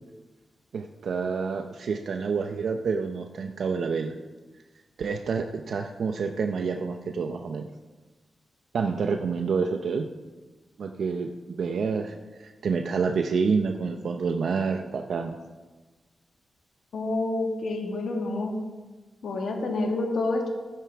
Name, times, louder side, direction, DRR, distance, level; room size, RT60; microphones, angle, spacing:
voice 1, 0.7-4.1 5.0-7.7 8.7-10.1 10.8-15.4, right 5 dB, 70° right, 5 dB, 0.6 m, -28 dB
voice 2, 16.9-18.5 19.2-20.5, left 2 dB, 80° left, 2 dB, 1.7 m, -28 dB
14.5 x 9.1 x 3.5 m, 1.3 s
wide cardioid pair, 130°, 0 cm